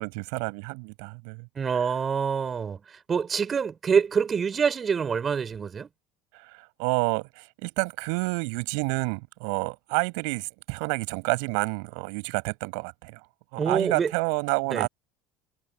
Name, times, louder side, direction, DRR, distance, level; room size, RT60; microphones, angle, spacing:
voice 1, 0.0-1.5 6.8-13.2 13.5-14.9, right 36 dB, 70° right, 5.7 m, -29 dB
voice 2, 1.6-5.9 13.6-14.1 14.7-14.9, right 6 dB, 30° right, 4.3 m, -26 dB
hypercardioid pair, 75°, 0 cm